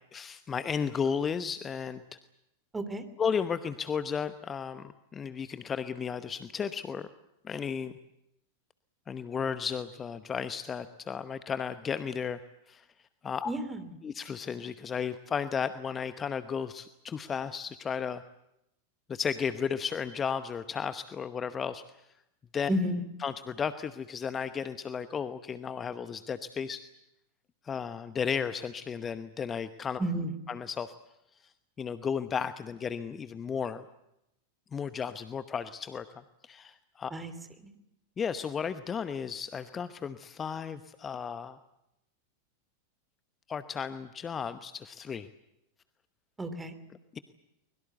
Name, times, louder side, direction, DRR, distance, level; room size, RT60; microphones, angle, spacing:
voice 1, 0.1-2.0 3.2-7.1 7.4-7.9 9.1-12.4 12.7-12.9 13.2-13.5 14.0-18.2 19.1-21.8 22.5-22.7 23.2-26.8 27.6-30.0 30.5-30.9 31.4-33.8 34.7-37.1 38.2-41.6 43.5-45.3 47.1-47.2, left 6 dB, 20° left, 12 dB, 0.9 m, -34 dB
voice 2, 13.5-13.8 22.7-23.0 30.0-30.3 37.1-37.3 46.4-46.7, equal, 10° right, 11 dB, 2.8 m, -31 dB
23.5 x 22.0 x 8.2 m, 0.85 s
figure-of-eight pair, 90°, 0 cm